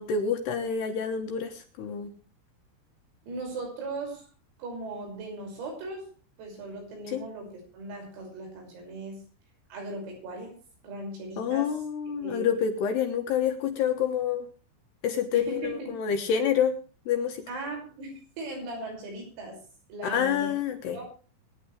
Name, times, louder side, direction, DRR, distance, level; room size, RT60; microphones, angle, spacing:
voice 1, 0.0-2.1 7.1-7.2 11.4-14.5 15.0-16.8 17.1-17.4 20.0-21.0, left 7 dB, 70° left, 5 dB, 2.8 m, -27 dB
voice 2, 3.2-4.3 4.6-6.1 6.4-9.2 9.7-10.6 10.8-11.8 12.2-12.6 15.3-15.9 17.5-19.6 19.9-20.5 20.9-21.0, right 2 dB, 90° right, 2 dB, 8.5 m, -38 dB
23.0 x 10.0 x 3.3 m, 0.36 s
omnidirectional pair, 5.9 m